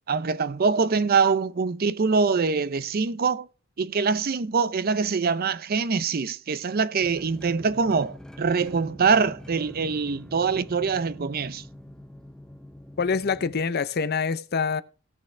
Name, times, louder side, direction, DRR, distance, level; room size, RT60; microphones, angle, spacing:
voice 1, 0.1-3.5 3.8-11.6, right 5 dB, 45° right, 0.5 m, -24 dB
sound 1, 7.0-13.6, equal, 5° left, 0.6 m, -44 dB
voice 2, 13.0-14.8, left 5 dB, 50° left, 0.6 m, -25 dB
17.0 x 6.5 x 3.2 m
head